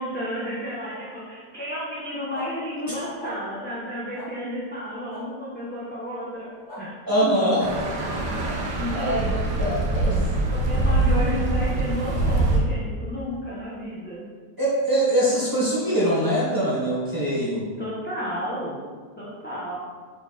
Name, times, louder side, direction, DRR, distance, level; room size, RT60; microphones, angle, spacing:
voice 1, 0.0-6.5 6.8-7.1 8.8-9.7 10.5-14.2 17.8-18.8 19.2-19.7, equal, 10° left, -8 dB, 0.8 m, -32 dB
sound 1, 2.3-2.5 3.2-3.3 4.1-4.3 5.1-5.2 6.7-6.8 7.7-7.9, equal, 40° left, 2.2 m, -38 dB
voice 2, 7.0-7.7 8.9-9.2 9.6-10.3 14.6-17.7, right 1 dB, 15° right, -8 dB, 1.3 m, -23 dB
sound 2, 7.6-12.6, right 2 dB, 75° right, 1.5 m, -24 dB
5.6 x 4.4 x 4.2 m, 1.5 s
omnidirectional pair, 1.9 m